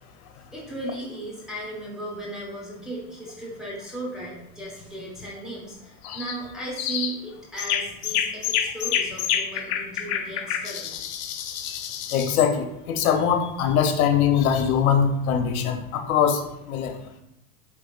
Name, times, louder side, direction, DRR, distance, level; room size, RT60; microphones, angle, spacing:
voice 1, 0.5-10.9, right 1 dB, ahead, -6 dB, 1.1 m, -36 dB
sound 1, 6.0-6.4 6.8-7.2 7.6-12.5, left 9 dB, 55° left, 0.5 m, -28 dB
voice 2, 12.1-17.0, left 7 dB, 80° left, 5 dB, 0.8 m, -22 dB
4.8 x 3.7 x 2.4 m, 0.83 s
supercardioid pair, 125°, 42 cm